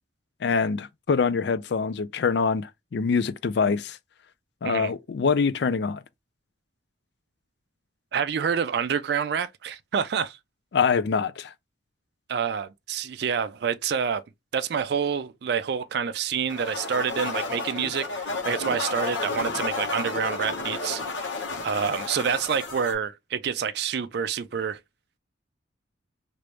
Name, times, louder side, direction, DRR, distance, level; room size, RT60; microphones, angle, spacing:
voice 1, 0.4-4.0 4.6-6.0 10.7-11.5, left 5 dB, 60° left, 0.4 m, -24 dB
voice 2, 8.1-10.4 12.3-14.2 14.5-21.0 21.6-24.8, right 7 dB, 55° right, 0.3 m, -27 dB
sound 1, 16.5-22.9, left 3 dB, 75° left, 1.0 m, -32 dB
3.3 x 2.5 x 3.0 m
head